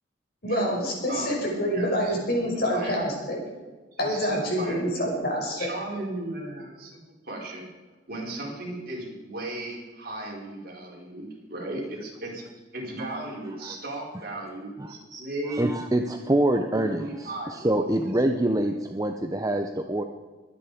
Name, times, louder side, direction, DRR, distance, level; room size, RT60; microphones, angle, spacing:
voice 1, 0.4-3.4 4.0-5.7, equal, 55° left, -1 dB, 5.7 m, -27 dB
voice 2, 1.7-2.1 2.7-3.0 3.9-4.8 5.6-7.7 8.1-12.4 12.7-15.7 16.5-17.7, right 1 dB, 55° right, -3 dB, 5.0 m, -36 dB
voice 3, 14.8-20.0, right 1 dB, 20° right, 5 dB, 0.8 m, -26 dB
23.5 x 9.9 x 5.1 m, 1.3 s
head